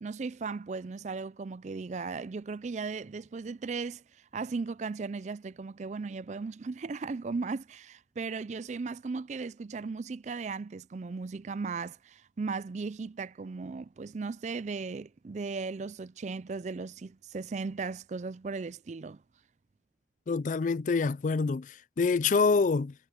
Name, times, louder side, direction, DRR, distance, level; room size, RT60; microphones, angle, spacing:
voice 1, 0.0-4.0 4.3-19.2, right 4 dB, 40° right, 0.4 m, -37 dB
voice 2, 20.3-22.9, left 4 dB, 45° left, 0.4 m, -26 dB
head